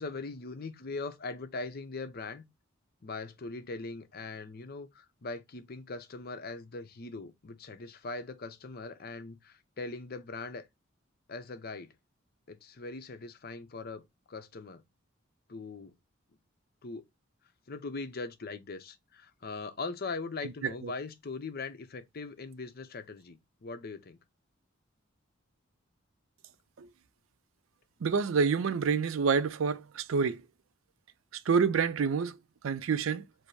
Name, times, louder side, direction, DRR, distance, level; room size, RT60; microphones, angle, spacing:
voice 1, 0.0-2.4 3.0-10.6 11.3-11.9 12.5-14.8 15.5-15.9 16.8-17.0 17.7-24.2, left 3 dB, 50° left, 0.7 m, -41 dB
voice 2, 28.0-30.4 31.5-32.4 32.6-33.2, right 5 dB, 80° right, 0.4 m, -28 dB
5.2 x 2.0 x 4.7 m
head